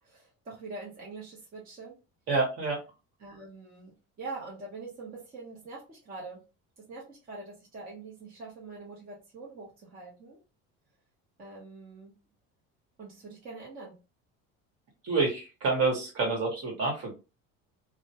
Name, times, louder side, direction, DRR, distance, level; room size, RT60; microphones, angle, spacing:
voice 1, 0.0-2.0 3.2-6.4 6.9-10.4 11.4-12.1 13.0-14.0, right 3 dB, 30° right, -4 dB, 0.7 m, -44 dB
voice 2, 2.3-2.8 15.0-17.1, right 3 dB, 50° right, 0 dB, 1.1 m, -28 dB
2.2 x 2.1 x 2.7 m, 0.30 s
cardioid pair, 145°, 30 cm